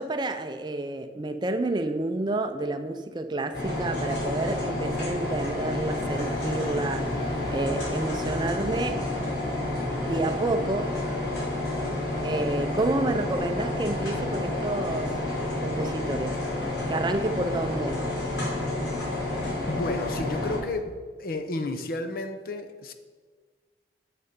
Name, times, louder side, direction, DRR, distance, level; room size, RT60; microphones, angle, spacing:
voice 1, 0.0-7.1 7.5-9.1 10.0-11.2 12.2-15.2 15.6-16.4 16.9-18.0, right 2 dB, 25° right, 0.4 m, -29 dB
sound 1, 3.5-20.6, left 1 dB, 75° left, 3.0 m, -30 dB
sound 2, 5.7-12.8, equal, 30° left, 1.0 m, -44 dB
voice 2, 19.7-22.9, left 2 dB, 55° left, 0.7 m, -32 dB
7.7 x 6.8 x 5.1 m
head